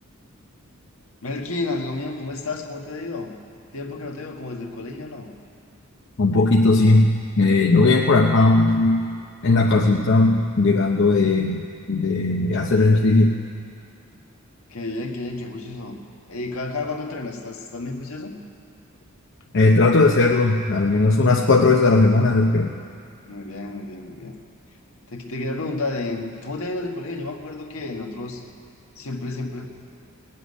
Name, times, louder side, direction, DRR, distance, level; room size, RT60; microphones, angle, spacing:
voice 1, 1.2-3.3 3.7-5.3 14.7-16.0 16.3-18.3 23.3-24.3 25.1-28.4 28.9-29.7, left 2 dB, 75° left, 2 dB, 1.6 m, -31 dB
voice 2, 6.2-9.0 9.4-11.6 11.9-13.4 19.5-22.7, left 2 dB, 60° left, 1 dB, 0.8 m, -17 dB
19.0 x 7.6 x 9.7 m, 2.4 s
head